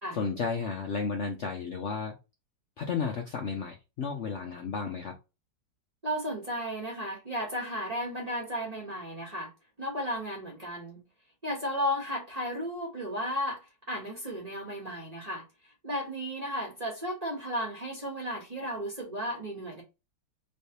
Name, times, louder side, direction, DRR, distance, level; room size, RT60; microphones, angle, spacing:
voice 1, 0.1-2.2 2.8-5.2, left 5 dB, 80° left, 0.6 m, -33 dB
voice 2, 6.0-9.5 9.8-11.0 11.4-19.8, equal, 25° right, 1.0 m, -34 dB
3.3 x 3.1 x 2.8 m
omnidirectional pair, 2.0 m